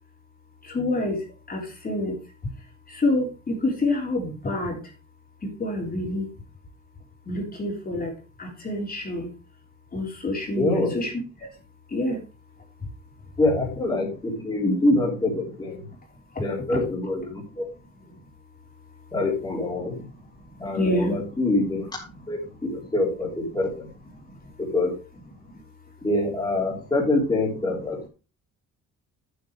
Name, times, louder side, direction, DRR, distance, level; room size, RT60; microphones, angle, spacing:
voice 1, 0.6-2.2 2.9-4.9 5.4-6.3 7.3-8.1 8.4-9.3 9.9-11.1 11.4-11.5 11.9-12.2 12.8-12.9 16.7-16.8 18.1-18.2 20.5-21.2 24.2-24.4 25.4-25.6, left 1 dB, 30° left, 0 dB, 3.4 m, -27 dB
voice 2, 10.5-11.0 13.4-15.9 16.4-17.7 19.1-20.1 20.6-23.9 24.6-24.9 26.0-28.1, left 2 dB, 15° left, -3 dB, 3.2 m, -25 dB
8.3 x 8.0 x 4.8 m, 0.32 s
cardioid pair, 125°, 31 cm